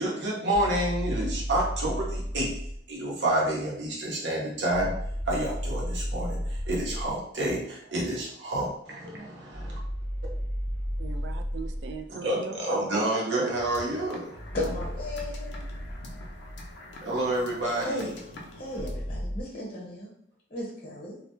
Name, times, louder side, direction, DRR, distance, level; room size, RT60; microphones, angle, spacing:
voice 1, 0.0-2.6 2.9-4.9 5.3-9.8 12.1-14.3 17.0-18.1, right 1 dB, 90° right, -3 dB, 0.8 m, -29 dB
sound 1, 0.5-2.8 4.7-7.2 9.5-12.1 14.3-16.9 18.7-19.4, equal, 15° left, 0.5 m, -33 dB
voice 2, 11.0-13.7, right 6 dB, 70° right, 7 dB, 0.3 m, -39 dB
sound 2, 13.5-18.9, left 1 dB, 70° left, 0.5 m, -46 dB
voice 3, 14.5-15.7 17.8-20.1 20.5-21.2, left 1 dB, 55° left, -4 dB, 0.8 m, -35 dB
2.3 x 2.0 x 2.9 m, 0.70 s
head